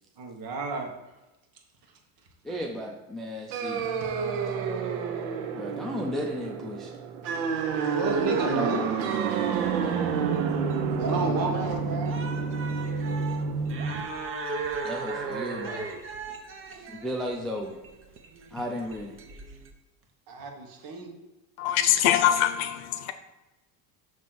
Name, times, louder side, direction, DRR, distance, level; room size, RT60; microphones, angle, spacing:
voice 1, 0.2-0.9 7.8-8.9 11.0-12.2 20.3-21.1, right 4 dB, 55° right, 1.5 m, -31 dB
voice 2, 2.4-3.8 5.5-6.9 14.8-15.9 16.9-17.8 18.5-19.2, equal, ahead, 0.4 m, -34 dB
sound 1, 3.5-14.0, right 5 dB, 90° right, 0.9 m, -29 dB
sound 2, 7.6-19.7, right 4 dB, 30° right, 0.8 m, -37 dB
voice 3, 21.6-23.1, left 11 dB, 60° left, 0.7 m, -23 dB
7.0 x 3.1 x 5.9 m
cardioid pair, 140°, 42 cm